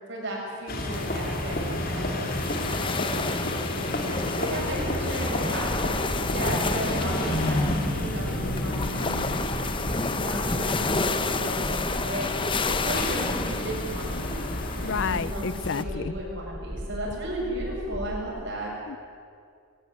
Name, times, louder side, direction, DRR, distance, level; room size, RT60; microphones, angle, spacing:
voice 1, 0.1-2.3 2.7-6.0 6.3-7.6 7.9-9.1 10.2-12.3 12.7-14.5 14.8-18.7, right 1 dB, 55° right, -3 dB, 7.7 m, -34 dB
sound 1, 0.7-15.2, left 1 dB, 40° left, 2.9 m, -31 dB
sound 2, 0.9-15.8, left 3 dB, 20° left, 0.8 m, -31 dB
sound 3, 5.6-18.4, equal, 5° right, 1.1 m, -38 dB
voice 2, 14.8-16.1 18.9-19.0, left 5 dB, 55° left, 18 dB, 0.5 m, -30 dB
22.0 x 18.0 x 9.6 m, 2.3 s
head